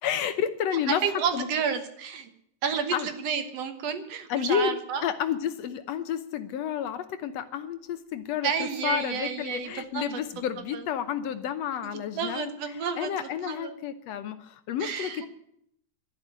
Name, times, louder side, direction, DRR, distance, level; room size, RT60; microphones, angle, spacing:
voice 1, 0.0-1.5 2.9-3.1 4.3-12.5 13.0-15.3, left 9 dB, 70° left, 11 dB, 1.9 m, -30 dB
voice 2, 0.9-2.3 2.6-5.0 8.4-10.2 10.7-10.8 11.9-13.8 14.8-15.3, right 6 dB, 65° right, 9 dB, 2.2 m, -31 dB
12.0 x 11.0 x 9.9 m, 0.72 s
omnidirectional pair, 3.3 m